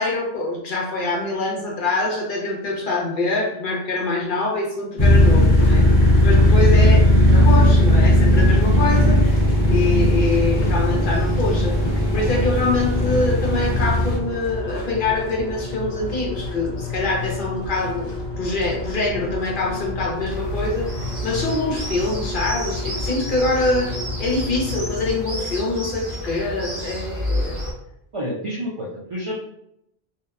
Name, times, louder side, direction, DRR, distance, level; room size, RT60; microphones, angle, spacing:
voice 1, 0.0-7.0 7.3-9.4 9.7-11.8 12.1-18.1 18.4-21.0 21.2-23.9 24.2-27.5, left 2 dB, 55° left, -3 dB, 0.8 m, -24 dB
sound 1, 5.0-14.2, left 1 dB, 25° left, 0.8 m, -16 dB
sound 2, 5.6-25.1, left 2 dB, 40° left, 0.4 m, -31 dB
sound 3, 20.3-27.7, equal, 35° right, 0.7 m, -30 dB
voice 2, 28.1-29.3, equal, 55° right, -4 dB, 0.3 m, -29 dB
2.7 x 2.1 x 2.3 m, 0.79 s
omnidirectional pair, 1.1 m